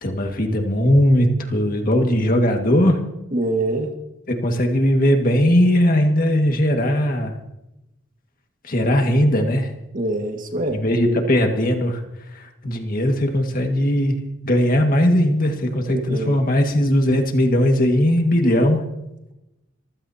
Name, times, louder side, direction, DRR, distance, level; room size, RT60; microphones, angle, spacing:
voice 1, 0.0-3.0 4.3-7.3 8.6-9.7 10.7-12.0 12.3-14.1 14.4-18.8, equal, 45° left, 3 dB, 1.9 m, -19 dB
voice 2, 3.3-3.9 9.9-10.8 15.9-16.4, right 1 dB, 40° right, 3 dB, 2.0 m, -24 dB
25.5 x 15.5 x 2.9 m, 0.90 s
head